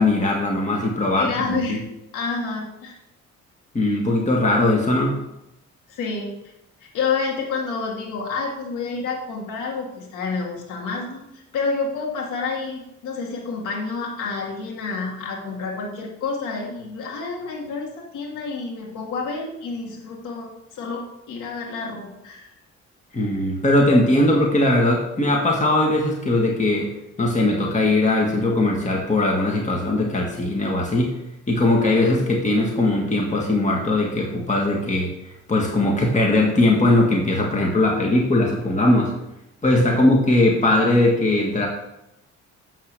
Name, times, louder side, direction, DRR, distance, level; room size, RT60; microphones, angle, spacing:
voice 1, 0.0-1.8 3.7-5.2 23.1-26.9 27.2-31.1 31.5-35.1 35.5-39.1 39.6-41.7, left 2 dB, 25° left, -1 dB, 1.9 m, -20 dB
voice 2, 1.1-3.0 5.9-6.4 6.9-22.5 39.9-40.1, left 4 dB, 90° left, -1 dB, 2.0 m, -29 dB
7.9 x 5.8 x 6.8 m, 0.88 s
cardioid pair, 90°, 30 cm